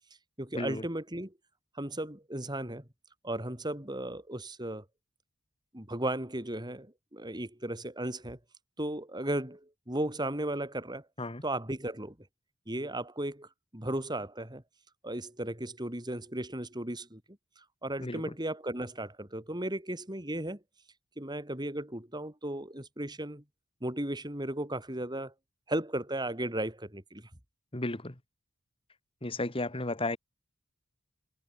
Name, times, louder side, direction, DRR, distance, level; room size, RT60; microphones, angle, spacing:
voice 1, 0.4-1.3 1.8-2.9 3.2-4.8 5.7-8.4 8.8-11.0 11.4-12.2 12.7-14.6 15.0-17.2 17.8-20.6 21.2-23.4 23.8-25.3 25.7-27.3, right 1 dB, 20° right, 4.2 m, -35 dB
voice 2, 18.0-18.3 27.7-28.2 29.2-30.2, left 2 dB, 25° left, 1.7 m, -34 dB
head